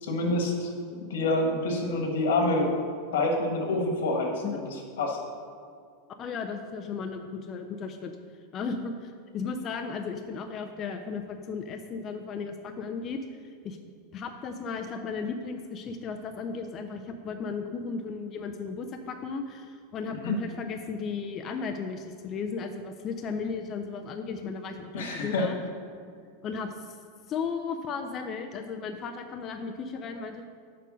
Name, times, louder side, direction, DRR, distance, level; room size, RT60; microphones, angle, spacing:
voice 1, 0.0-2.7 3.1-5.2 20.2-20.4 24.9-25.5, left 2 dB, 90° left, 2 dB, 1.5 m, -27 dB
voice 2, 6.2-8.1 8.5-13.2 13.6-13.8 14.1-25.6 26.4-27.0 27.3-30.4, left 5 dB, 25° left, 5 dB, 0.4 m, -35 dB
6.7 x 5.1 x 6.2 m, 2.2 s
supercardioid pair, 175°, 0 cm